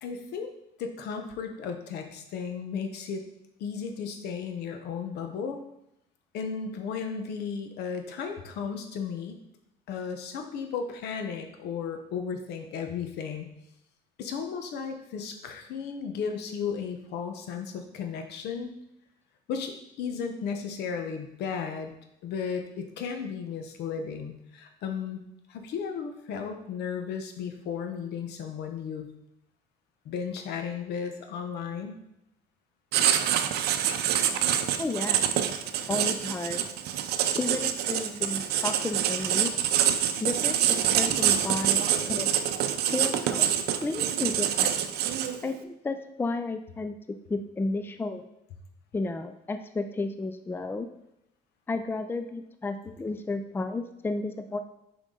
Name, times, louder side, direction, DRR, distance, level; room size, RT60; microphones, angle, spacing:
voice 1, 0.0-0.5 0.8-3.2 3.6-5.6 6.3-9.4 9.9-13.5 14.2-18.7 19.5-21.9 22.2-25.2 25.5-29.1 30.0-32.0, left 6 dB, 75° left, 5 dB, 1.0 m, -34 dB
Writing, 32.9-45.5, right 10 dB, 75° right, 0.6 m, -26 dB
voice 2, 34.8-35.3 35.9-36.7 37.3-39.5 40.2-42.3 42.9-43.5 43.8-44.7 45.4-46.9 47.3-48.2 48.9-50.9 51.7-54.6, left 3 dB, 10° left, 8 dB, 0.4 m, -32 dB
6.4 x 5.1 x 3.8 m, 0.82 s
cardioid pair, 110°, 17 cm